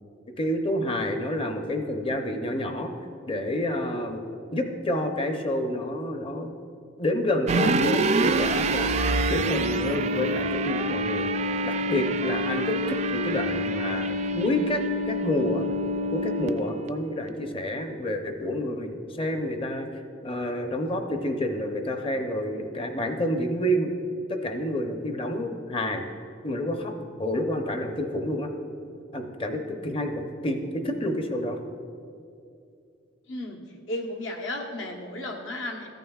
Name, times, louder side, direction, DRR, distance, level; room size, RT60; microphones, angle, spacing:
voice 1, 0.4-2.9 3.3-4.2 4.5-6.5 7.0-11.3 11.6-15.7 16.1-19.9 20.2-23.9 24.3-26.0 26.4-26.9 27.2-28.5 29.1-31.6, left 1 dB, 30° left, 5 dB, 0.6 m, -29 dB
sound 1, 7.5-16.9, right 2 dB, 35° right, 0.3 m, -26 dB
voice 2, 33.3-35.9, left 1 dB, 75° left, 1 dB, 1.1 m, -34 dB
14.0 x 9.1 x 2.4 m, 2.5 s
head